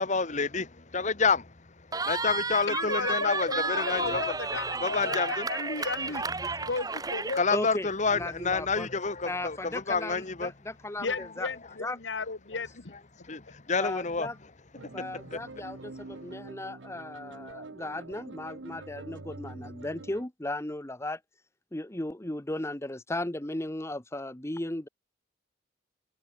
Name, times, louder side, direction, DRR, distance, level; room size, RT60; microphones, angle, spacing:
voice 1, 0.0-1.5 2.0-4.2 4.8-5.5 7.3-10.5 11.1-11.2 13.2-14.3 14.8-14.9 15.3-15.4, left 4 dB, 40° left, 1.4 m, -28 dB
Cheering, 1.9-7.4, right 4 dB, 20° right, 1.4 m, -32 dB
voice 2, 2.7-6.3 6.6-7.4 11.0-12.9, left 4 dB, 80° left, 1.5 m, -34 dB
voice 3, 7.5-8.9 9.3-11.5 11.8-12.0 13.8-14.4 14.9-21.2 21.7-24.9, left 1 dB, 15° left, 1.0 m, -36 dB
sound 1, 14.8-20.3, right 2 dB, 85° right, 1.1 m, -45 dB
head